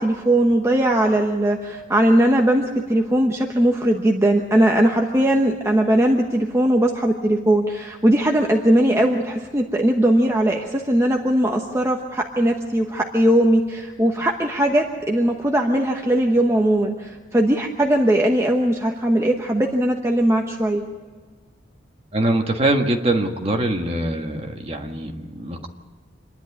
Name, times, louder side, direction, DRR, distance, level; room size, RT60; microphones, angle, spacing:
voice 1, 0.0-20.8, right 1 dB, 15° right, 1 dB, 1.0 m, -19 dB
voice 2, 22.1-25.7, right 1 dB, 30° right, 3 dB, 1.6 m, -23 dB
26.5 x 11.0 x 9.8 m, 1.4 s
head